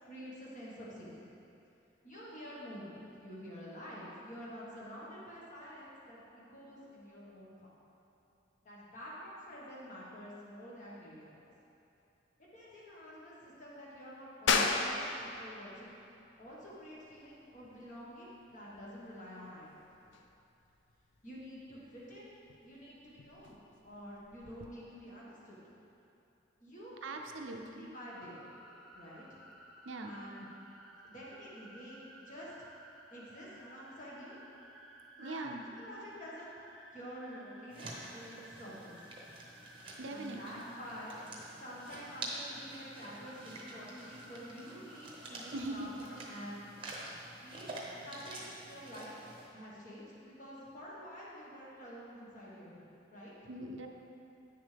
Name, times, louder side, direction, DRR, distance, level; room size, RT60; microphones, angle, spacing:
voice 1, 0.1-1.1 2.0-7.5 8.6-11.4 12.5-16.0 16.4-19.8 21.2-22.3 22.6-23.6 23.8-25.6 26.6-27.1 27.5-28.5 28.9-29.4 30.0-30.5 31.0-32.7 33.1-34.4 35.2-35.5 35.8-36.6 36.9-39.1 40.1-41.2 41.6-46.6 47.4-47.7 47.9-49.2 49.5-52.8 53.1-53.3, equal, 40° left, -6 dB, 1.6 m, -48 dB
sound 1, 14.5-24.7, left 4 dB, 70° left, 0.5 m, -38 dB
voice 2, 27.0-27.9 29.8-30.2 35.2-35.6 40.0-40.6 45.5-45.9 53.5-53.9, right 2 dB, 75° right, 3 dB, 0.6 m, -41 dB
sound 2, 27.9-46.5, right 1 dB, ahead, 0.5 m, -56 dB
sound 3, 37.7-49.5, right 2 dB, 25° right, 0.9 m, -48 dB
9.0 x 6.6 x 3.4 m, 2.9 s
head